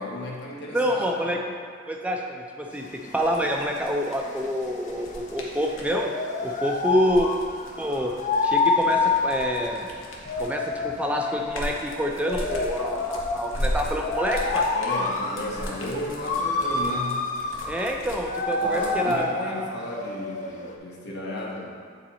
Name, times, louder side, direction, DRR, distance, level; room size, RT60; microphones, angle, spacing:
voice 1, 0.0-1.4 14.7-17.3 18.6-21.8, left 1 dB, 60° left, -3 dB, 1.2 m, -34 dB
voice 2, 0.7-1.4 1.9-6.1 6.4-7.3 7.8-8.1 8.4-9.9 10.4-14.7 17.7-19.7, equal, 5° right, 1 dB, 0.4 m, -27 dB
sound 1, 2.7-20.8, left 3 dB, 40° left, 0.6 m, -28 dB
sound 2, 3.2-6.0 6.9-10.7 11.1-19.2, left 1 dB, 80° left, 1.1 m, -37 dB
8.9 x 4.0 x 4.2 m, 2.1 s
head